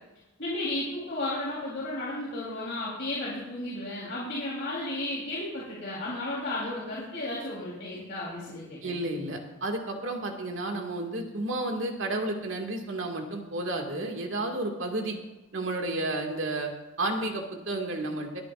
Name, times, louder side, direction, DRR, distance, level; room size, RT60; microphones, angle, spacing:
voice 1, 0.4-9.0, left 1 dB, 60° left, -7 dB, 3.5 m, -33 dB
voice 2, 8.8-15.2 15.5-16.7 17.0-18.4, right 2 dB, 65° right, 2 dB, 2.1 m, -31 dB
22.5 x 10.0 x 2.5 m, 1.1 s
head